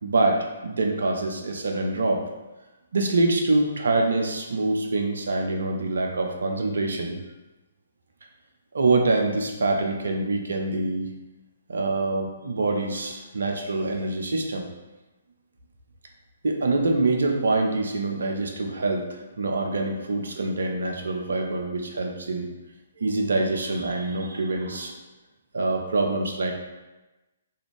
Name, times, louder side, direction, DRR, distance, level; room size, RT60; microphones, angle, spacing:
voice 1, 0.0-2.2 2.9-7.2 8.7-11.1 11.7-14.7 16.4-19.0 19.4-22.5 23.0-25.0 25.5-26.5, right 2 dB, 60° right, 3 dB, 0.4 m, -25 dB
2.4 x 2.4 x 3.1 m, 1.1 s
figure-of-eight pair, 130°, 0 cm